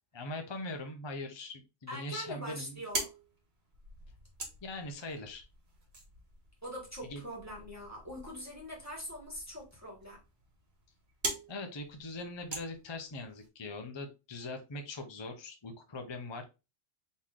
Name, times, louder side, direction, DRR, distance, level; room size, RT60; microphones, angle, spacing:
voice 1, 0.1-2.8 4.6-5.5 7.1-7.2 11.5-16.4, left 2 dB, 30° left, 5 dB, 0.5 m, -41 dB
voice 2, 1.9-3.1 6.6-10.2, equal, 10° right, -3 dB, 1.5 m, -43 dB
sound 1, 2.7-13.5, right 2 dB, 50° right, 1.7 m, -44 dB
4.1 x 3.1 x 3.6 m, 0.28 s
omnidirectional pair, 1.4 m